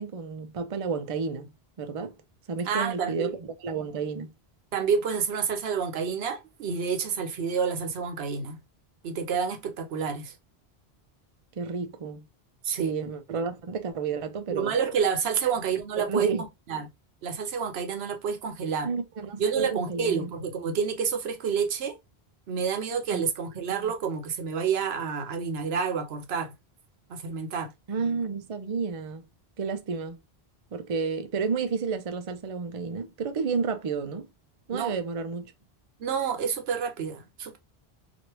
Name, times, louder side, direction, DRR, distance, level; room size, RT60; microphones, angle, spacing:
voice 1, 0.0-1.5 1.8-2.1 2.5-4.3 11.6-12.3 12.7-14.7 15.4-15.6 16.0-16.4 18.8-20.3 23.1-23.2 23.5-23.9 27.9-29.2 29.6-30.2 30.7-34.3 34.7-35.5, right 5 dB, 45° right, 0.4 m, -31 dB
voice 2, 2.7-3.4 4.7-8.6 9.0-10.3 12.6-12.9 14.5-16.3 16.7-16.9 17.2-18.9 19.4-21.9 22.5-26.5 27.1-27.7 34.7-34.9 36.0-37.6, right 6 dB, 75° right, 0.9 m, -29 dB
2.9 x 2.5 x 2.9 m
omnidirectional pair, 1.1 m